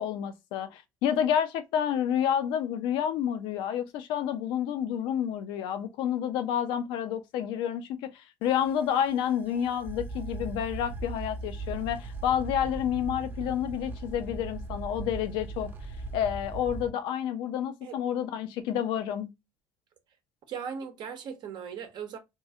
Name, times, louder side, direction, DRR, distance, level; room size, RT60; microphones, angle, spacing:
voice 1, 0.0-15.7 16.1-19.3, left 9 dB, 75° left, 0.6 m, -29 dB
sound 1, 8.4-16.9, right 3 dB, 25° right, 0.7 m, -39 dB
voice 2, 20.5-22.2, right 7 dB, 60° right, 0.8 m, -38 dB
2.7 x 2.3 x 2.7 m
supercardioid pair, 70°, 8 cm